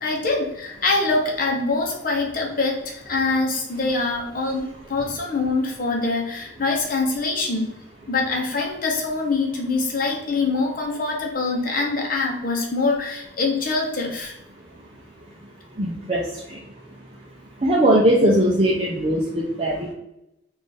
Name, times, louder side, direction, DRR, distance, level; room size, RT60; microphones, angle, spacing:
voice 1, 0.0-7.7 8.1-14.3, left 3 dB, 45° left, 0 dB, 0.9 m, -24 dB
voice 2, 15.8-16.2 16.5-16.6 17.6-19.9, right 1 dB, 30° right, -4 dB, 0.5 m, -19 dB
3.9 x 2.5 x 3.3 m, 0.86 s
head